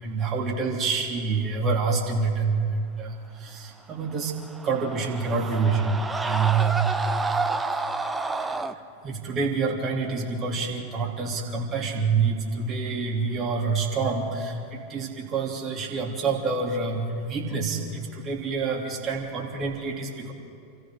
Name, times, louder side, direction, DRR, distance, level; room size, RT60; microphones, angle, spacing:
voice 1, 0.0-4.3 4.6-6.9 8.4-8.7 9.0-20.3, right 4 dB, 30° right, 0 dB, 3.2 m, -27 dB
Screaming, 4.3-8.7, right 3 dB, 10° right, 0.8 m, -29 dB
28.0 x 14.5 x 6.5 m, 2.4 s
figure-of-eight pair, 90°, 0 cm